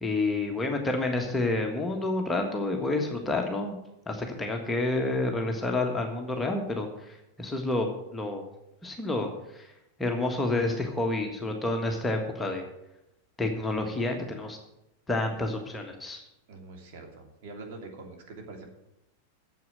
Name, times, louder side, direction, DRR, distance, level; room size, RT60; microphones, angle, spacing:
voice 1, 0.0-3.7 4.1-8.4 8.8-9.7 10.0-12.6 13.4-14.6 15.1-16.2, left 2 dB, 10° left, 2 dB, 1.6 m, -29 dB
voice 2, 16.5-18.7, right 3 dB, 50° right, 1 dB, 2.9 m, -44 dB
9.3 x 7.7 x 9.1 m, 0.88 s
figure-of-eight pair, 90°, 0 cm